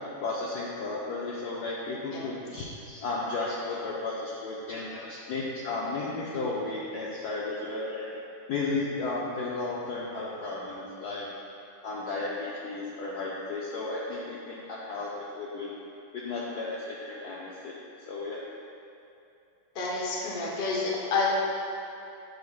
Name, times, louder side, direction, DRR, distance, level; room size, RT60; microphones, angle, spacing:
voice 1, 0.2-8.2 8.5-11.3 11.8-15.8 16.1-18.4, left 3 dB, 70° left, -5 dB, 1.0 m, -34 dB
voice 2, 19.7-21.3, left 3 dB, 45° left, -4 dB, 0.8 m, -29 dB
8.1 x 6.2 x 2.4 m, 2.7 s
omnidirectional pair, 2.2 m